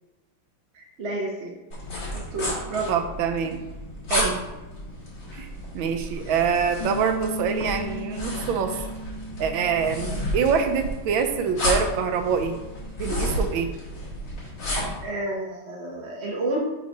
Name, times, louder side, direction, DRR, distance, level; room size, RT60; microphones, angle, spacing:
voice 1, 0.7-1.5 2.1-2.9 15.0-16.7, right 2 dB, 45° right, -2 dB, 0.9 m, -30 dB
sound 1, 1.7-15.0, equal, 80° left, 3.2 m, -32 dB
voice 2, 2.9-3.6 4.1-4.5 5.3-5.5 5.7-8.8 9.4-12.6 13.0-13.7, right 6 dB, 75° right, 7 dB, 1.4 m, -25 dB
Bass guitar, 6.8-13.1, right 1 dB, 60° left, 2.6 m, -37 dB
5.8 x 4.0 x 5.2 m, 1.1 s
omnidirectional pair, 2.2 m